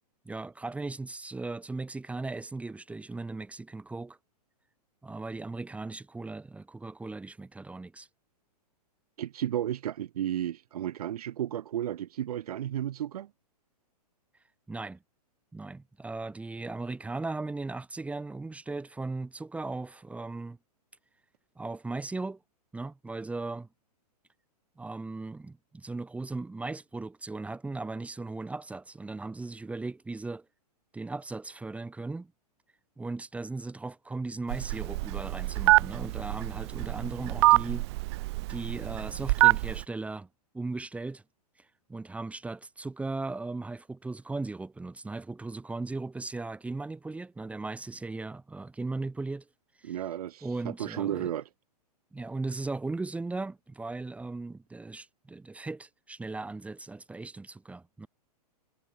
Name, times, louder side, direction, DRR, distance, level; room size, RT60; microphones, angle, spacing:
voice 1, 0.2-4.2 5.0-8.1 14.7-15.0 15.5-20.6 21.6-22.4 22.7-23.7 24.8-30.5 30.9-32.3 33.0-37.8 38.5-40.3 40.5-41.2 41.6-49.5 49.8-50.0 50.4-51.3 52.1-58.1, right 3 dB, 5° right, 5.9 m, -37 dB
voice 2, 9.2-13.3 49.8-51.4, right 11 dB, 65° right, 3.3 m, -33 dB
Telephone, 34.5-39.8, right 21 dB, 40° right, 0.8 m, -25 dB
hypercardioid pair, 140°, 21 cm